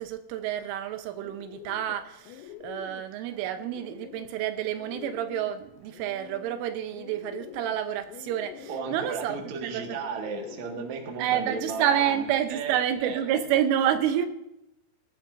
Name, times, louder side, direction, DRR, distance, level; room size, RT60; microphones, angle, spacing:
voice 1, 0.0-10.0 11.2-14.3, right 10 dB, 80° right, 8 dB, 3.2 m, -29 dB
Bird, 0.8-12.5, left 10 dB, 85° left, 3.3 m, -47 dB
voice 2, 8.7-13.4, right 5 dB, 60° right, 1 dB, 2.1 m, -34 dB
18.5 x 12.0 x 2.6 m, 0.85 s
omnidirectional pair, 5.7 m